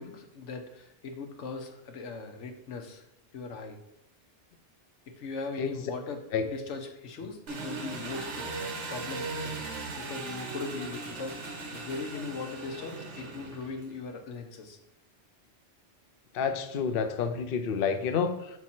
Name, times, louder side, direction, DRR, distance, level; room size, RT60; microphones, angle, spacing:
voice 1, 0.0-3.0 3.3-3.8 5.1-9.7 10.0-14.8, left 4 dB, 85° left, 5 dB, 1.1 m, -39 dB
Engine, 7.5-14.0, right 3 dB, 80° right, 1.3 m, -38 dB
voice 2, 16.3-18.5, left 6 dB, 60° left, 7 dB, 0.7 m, -29 dB
6.1 x 4.5 x 4.3 m, 0.82 s
omnidirectional pair, 1.2 m